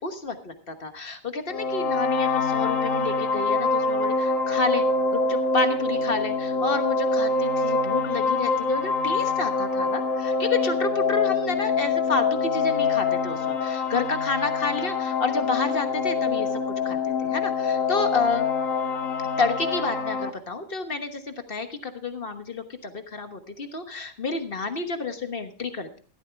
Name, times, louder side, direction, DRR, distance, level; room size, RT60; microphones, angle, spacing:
voice 1, 0.0-4.8 5.1-16.5 16.8-18.4 19.4-26.0, left 4 dB, 45° left, 7 dB, 1.4 m, -29 dB
sound 1, 1.5-20.3, left 4 dB, 75° left, 1.6 m, -25 dB
14.5 x 13.0 x 3.5 m, 0.41 s
omnidirectional pair, 1.4 m